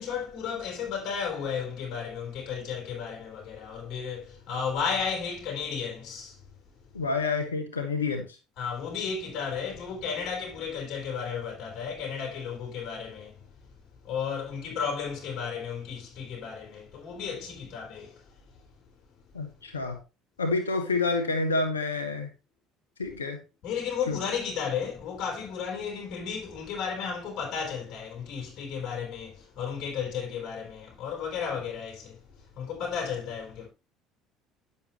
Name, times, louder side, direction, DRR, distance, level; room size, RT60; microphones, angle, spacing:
voice 1, 0.0-6.4 8.6-13.5 14.0-18.4 23.6-33.7, left 6 dB, 55° left, 4.1 m, -34 dB
voice 2, 6.9-8.2 19.3-20.0 20.4-22.3 23.0-23.4 24.1-24.2, left 3 dB, 90° left, 1.4 m, -28 dB
10.0 x 7.2 x 3.1 m
hypercardioid pair, 65°, 0 cm